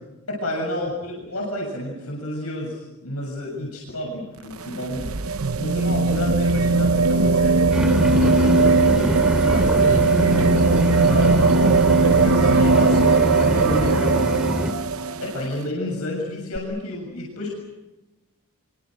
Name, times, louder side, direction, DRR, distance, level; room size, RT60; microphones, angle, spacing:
voice 1, 0.3-5.1 5.6-14.4 15.2-17.6, left 1 dB, 85° left, -2 dB, 7.3 m, -31 dB
sound 1, 4.4-15.4 16.6-16.7, right 3 dB, 80° right, 0.9 m, -19 dB
sound 2, 7.7-14.7, equal, 5° right, 2.5 m, -25 dB
27.5 x 25.0 x 6.5 m, 1.0 s
head